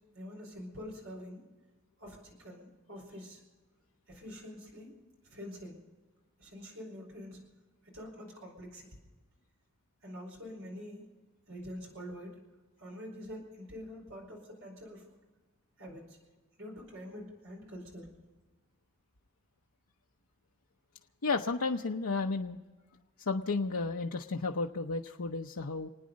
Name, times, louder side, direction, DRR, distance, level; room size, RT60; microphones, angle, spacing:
voice 1, 0.1-1.4 2.0-3.4 4.1-5.0 5.2-5.8 6.4-7.4 7.8-8.9 10.0-11.1 11.5-12.4 12.8-15.0 15.8-16.2 16.6-18.1, equal, 65° right, 0 dB, 4.8 m, -46 dB
voice 2, 21.2-22.6 23.2-25.9, left 3 dB, 85° left, 1 dB, 0.8 m, -32 dB
28.5 x 9.7 x 5.2 m, 1.3 s
head